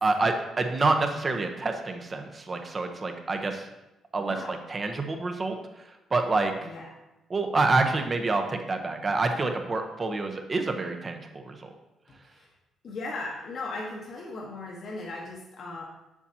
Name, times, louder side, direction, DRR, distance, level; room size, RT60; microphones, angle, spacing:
voice 1, 0.0-3.7 4.1-6.5 7.3-11.7, right 3 dB, 35° right, 5 dB, 0.9 m, -27 dB
voice 2, 4.2-4.5 6.5-6.9 12.1-12.5 12.8-15.8, left 2 dB, 60° left, -2 dB, 1.1 m, -38 dB
7.1 x 7.0 x 2.8 m, 0.97 s
cardioid pair, 90°, 0 cm